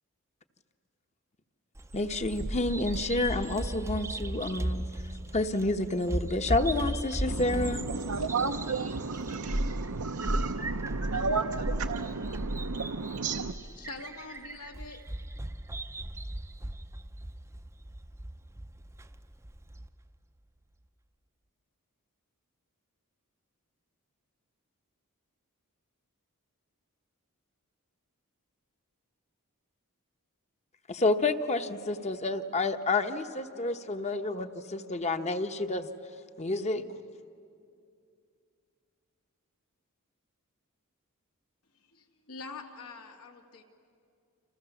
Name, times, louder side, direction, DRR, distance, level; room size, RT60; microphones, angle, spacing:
Bird vocalization bird call bird song, 1.8-19.9, right 1 dB, 10° right, 0.6 m, -36 dB
voice 1, 1.9-4.9 5.3-7.8 30.9-35.9 36.4-36.9, left 2 dB, 30° left, 1.0 m, -29 dB
voice 2, 7.3-13.6, right 4 dB, 75° right, 0.7 m, -33 dB
voice 3, 13.8-15.0 41.9-43.6, left 4 dB, 85° left, 2.4 m, -44 dB
29.5 x 27.0 x 7.1 m
head